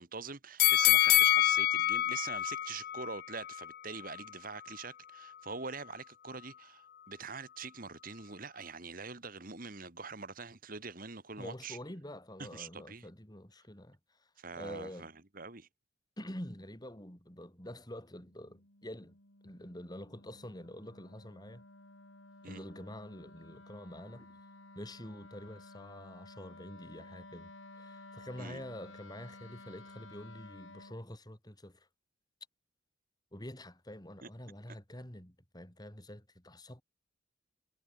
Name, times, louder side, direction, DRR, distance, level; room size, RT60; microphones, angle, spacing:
voice 1, 0.0-11.8 12.4-13.1 14.4-15.7 22.4-22.6 28.4-28.6 34.2-34.3, right 4 dB, 45° right, 1.9 m, -44 dB
sound 1, 0.6-3.7 4.1-4.2, left 14 dB, 50° left, 0.3 m, -26 dB
voice 2, 11.4-14.3 14.6-15.1 16.2-19.2 19.4-21.6 22.5-24.3 24.7-31.9 33.3-36.8, left 1 dB, 20° left, 3.3 m, -47 dB
Wind instrument woodwind instrument, 18.1-31.0, left 2 dB, 75° left, 7.1 m, -54 dB
head